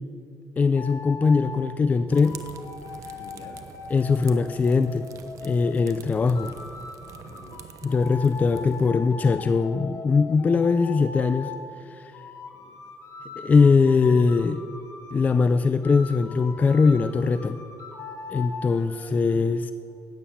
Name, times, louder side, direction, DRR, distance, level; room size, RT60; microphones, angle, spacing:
voice 1, 0.6-2.4 3.9-5.1 5.4-6.5 7.8-11.5 11.9-12.1 13.4-14.6 15.1-17.6 18.3-19.7, left 4 dB, 25° left, 10 dB, 0.4 m, -21 dB
sound 1, 0.8-1.6 2.1-5.9 6.4-11.7 12.1-15.5 15.8-18.7, left 4 dB, 50° left, 1.5 m, -40 dB
sound 2, 2.1-8.9, right 7 dB, 55° right, 0.8 m, -44 dB
voice 2, 3.2-3.6 7.3-7.9 12.5-12.9 18.7-19.4, left 4 dB, 65° left, 3 dB, 2.0 m, -50 dB
15.5 x 9.2 x 7.0 m, 2.8 s
cardioid pair, 150°, 7 cm